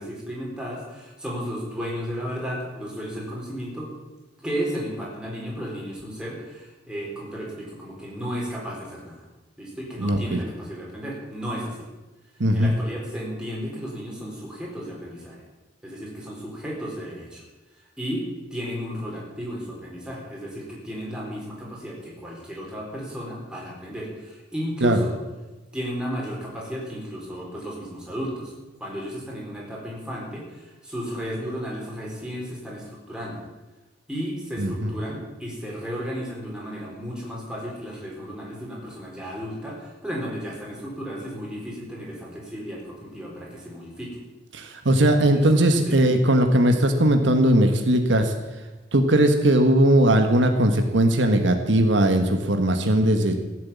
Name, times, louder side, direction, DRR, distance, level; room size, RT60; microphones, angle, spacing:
voice 1, 0.0-3.9 4.4-9.2 9.6-11.8 12.5-15.4 15.8-17.4 18.0-18.2 18.5-25.1 25.7-28.5 28.8-33.4 34.1-44.2 45.3-45.4 45.9-46.0, equal, 5° right, -4 dB, 4.1 m, -33 dB
voice 2, 10.0-10.4 12.4-12.7 24.8-25.0 34.6-34.9 44.5-48.3 48.9-53.3, right 1 dB, 75° right, 6 dB, 1.3 m, -19 dB
15.0 x 7.6 x 8.5 m, 1.1 s
head